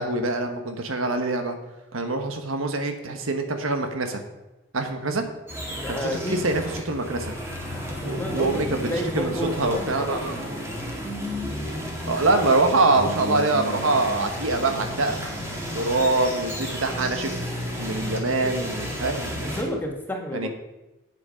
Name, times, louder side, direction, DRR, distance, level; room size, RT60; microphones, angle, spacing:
voice 1, 0.0-1.5 1.9-4.2 4.7-5.2 5.9-7.3 8.0-8.8 9.1-10.8 12.1-15.2 15.7-17.3 17.8-19.6 20.3-20.5, right 2 dB, 90° right, 6 dB, 1.3 m, -24 dB
sound 1, 5.5-19.6, equal, 15° right, 2.1 m, -32 dB
voice 2, 5.7-6.6 7.1-7.2 7.9-10.6 18.4-18.7 19.3-20.5, equal, 10° left, 1 dB, 1.5 m, -32 dB
8.5 x 8.3 x 5.2 m, 1.0 s
head